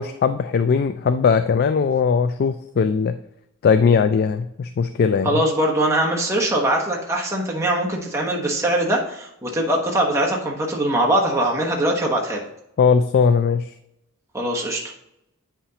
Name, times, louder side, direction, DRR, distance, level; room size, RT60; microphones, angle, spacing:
voice 1, 0.0-3.1 3.6-5.3 12.8-13.6, left 5 dB, 50° left, 9 dB, 0.3 m, -19 dB
voice 2, 5.2-12.4 14.3-14.9, right 1 dB, 15° right, -2 dB, 1.1 m, -22 dB
8.8 x 5.8 x 2.8 m, 0.81 s
head